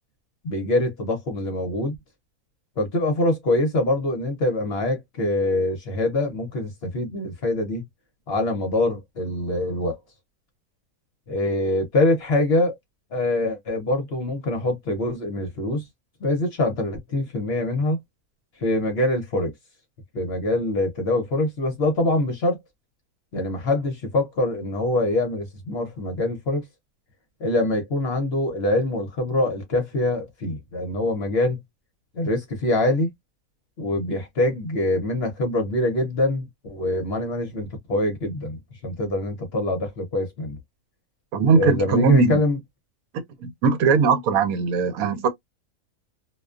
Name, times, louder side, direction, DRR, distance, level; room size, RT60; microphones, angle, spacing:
voice 1, 0.4-2.0 2.8-7.8 8.3-10.0 11.3-12.8 13.1-15.9 16.2-18.0 18.6-19.5 20.1-22.6 23.3-26.6 27.4-31.6 32.1-33.1 33.8-40.6 41.5-42.6, left 2 dB, 55° left, 0.8 m, -24 dB
voice 2, 41.3-42.4 43.4-45.3, right 5 dB, 80° right, 1.0 m, -20 dB
2.4 x 2.2 x 2.4 m
omnidirectional pair, 1.5 m